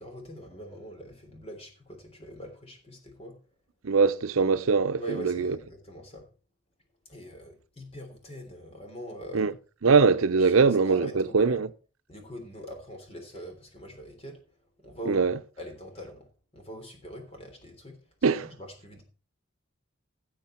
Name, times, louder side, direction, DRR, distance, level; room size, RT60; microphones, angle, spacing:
voice 1, 0.0-3.4 5.0-6.2 7.1-9.5 10.4-11.6 12.1-14.4 14.8-15.2 15.6-16.3 16.5-18.0 18.4-19.0, equal, 30° left, 3.3 m, -42 dB
voice 2, 3.8-5.6 9.3-9.5 9.8-11.7 15.1-15.4 18.2-18.5, right 4 dB, 90° right, 0.7 m, -22 dB
16.0 x 6.6 x 4.4 m
head